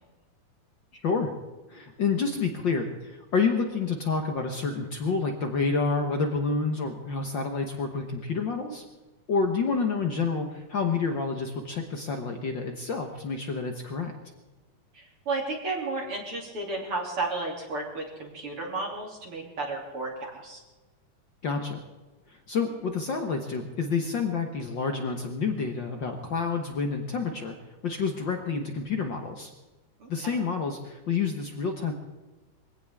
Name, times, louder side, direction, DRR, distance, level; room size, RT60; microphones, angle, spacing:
voice 1, 1.7-8.8 9.3-14.1 21.4-21.8 22.3-27.6 27.8-29.5 30.1-31.9, left 4 dB, 60° left, 4 dB, 1.2 m, -28 dB
voice 2, 14.9-20.6 30.0-30.4, right 3 dB, 45° right, -1 dB, 3.6 m, -33 dB
23.0 x 16.5 x 3.6 m, 1.2 s
omnidirectional pair, 3.7 m